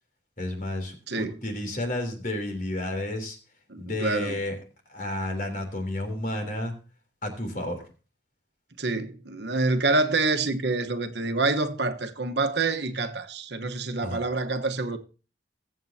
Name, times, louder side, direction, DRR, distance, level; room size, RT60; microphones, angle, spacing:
voice 1, 0.4-3.4 3.8-4.5 4.9-6.7 7.2-7.9 14.0-14.2, left 1 dB, 50° left, 3.3 m, -31 dB
voice 2, 3.7-4.4 8.8-15.0, right 3 dB, 70° right, 1.2 m, -27 dB
22.0 x 7.8 x 2.8 m
head